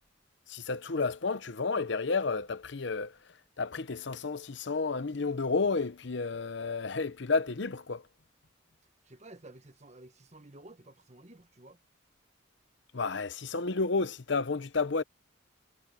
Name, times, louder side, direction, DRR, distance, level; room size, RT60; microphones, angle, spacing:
voice 1, 0.5-3.2 3.6-8.0 12.9-15.0, left 4 dB, 60° left, 0.8 m, -31 dB
voice 2, 9.0-11.8, right 2 dB, 35° right, 1.4 m, -52 dB
head